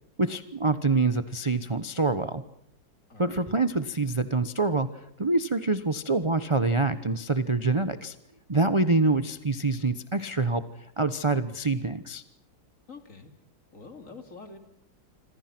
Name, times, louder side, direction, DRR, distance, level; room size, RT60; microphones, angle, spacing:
voice 1, 0.2-2.4 3.2-8.1 8.5-10.6 11.0-12.2, right 3 dB, 25° right, 11 dB, 0.7 m, -26 dB
voice 2, 3.1-3.4 12.9-13.4 13.7-14.6, left 4 dB, 45° left, 6 dB, 3.1 m, -46 dB
27.5 x 25.5 x 6.1 m, 0.74 s
omnidirectional pair, 2.0 m